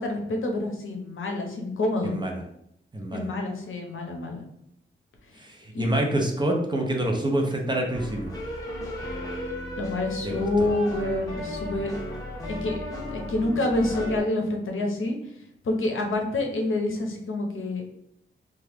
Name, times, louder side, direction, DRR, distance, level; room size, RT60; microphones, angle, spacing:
voice 1, 0.0-2.2 3.1-4.4 5.3-5.4 5.7-5.9 9.0-9.1 9.8-11.9 12.6-12.8 13.1-15.2 15.6-17.8, left 2 dB, 80° left, 2 dB, 0.7 m, -27 dB
voice 2, 2.0-2.3 2.9-3.3 5.4-8.3 10.2-10.7, right 1 dB, 20° right, 1 dB, 0.5 m, -27 dB
sound 1, 7.9-14.2, left 1 dB, 15° left, 0.7 m, -35 dB
2.9 x 2.3 x 3.3 m, 0.75 s
wide cardioid pair, 160°, 21 cm